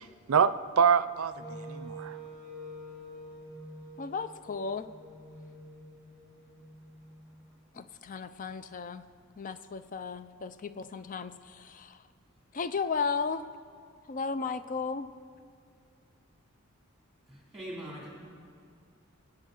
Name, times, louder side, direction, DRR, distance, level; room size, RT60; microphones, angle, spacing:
voice 1, 0.0-2.2, right 7 dB, 75° right, 0.5 m, -26 dB
Wind instrument woodwind instrument, 1.4-7.4, right 1 dB, 15° left, 3.5 m, -46 dB
voice 2, 4.0-4.9 7.7-9.0 9.4-12.1 12.5-13.5 14.1-15.1, left 5 dB, 40° left, 0.4 m, -35 dB
voice 3, 17.3-18.1, right 1 dB, ahead, 2.8 m, -42 dB
25.0 x 8.8 x 3.9 m
head